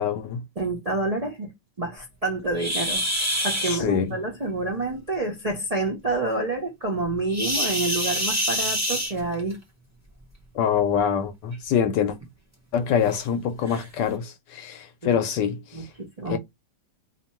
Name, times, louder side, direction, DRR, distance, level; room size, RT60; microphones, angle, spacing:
voice 1, 0.0-0.4 3.6-4.2 10.5-12.2 12.7-15.9 16.3-16.4, left 8 dB, 75° left, 1.2 m, -25 dB
voice 2, 0.6-1.5 1.8-3.0 3.4-9.6 15.0-15.2 15.7-16.4, right 2 dB, 80° right, 0.3 m, -28 dB
sound 1, 2.5-3.8 7.3-9.5 10.8-11.0 11.5-11.6 12.2-12.3 13.1-13.2 13.7-13.9, equal, 10° right, 0.8 m, -26 dB
2.8 x 2.6 x 4.2 m
omnidirectional pair, 2.0 m